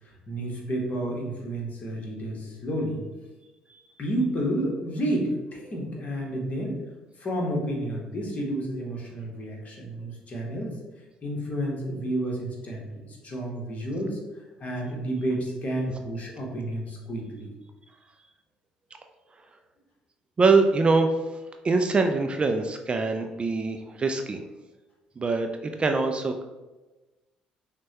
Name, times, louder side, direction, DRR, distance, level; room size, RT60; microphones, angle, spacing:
voice 1, 0.3-3.0 4.0-6.8 7.2-10.7 11.2-14.2 14.6-17.5, right 1 dB, 40° left, -1 dB, 1.2 m, -30 dB
voice 2, 20.4-21.2 21.6-24.4 25.2-26.4, right 3 dB, 30° right, 5 dB, 0.3 m, -23 dB
6.0 x 2.2 x 2.8 m, 1.1 s
figure-of-eight pair, 50°, 4 cm